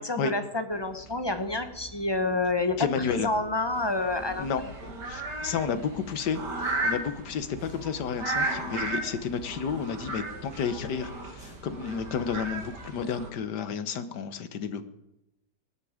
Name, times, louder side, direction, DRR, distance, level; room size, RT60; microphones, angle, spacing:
voice 1, 0.0-4.7, left 2 dB, 20° left, 8 dB, 0.8 m, -29 dB
sound 1, 0.7-13.1, right 2 dB, 50° right, 2.7 m, -50 dB
voice 2, 2.8-3.3 4.4-6.4 6.8-14.9, left 6 dB, 80° left, 11 dB, 1.7 m, -31 dB
sound 2, 3.7-13.3, right 2 dB, 85° right, 2.8 m, -35 dB
19.0 x 11.5 x 5.0 m, 0.87 s
omnidirectional pair, 1.8 m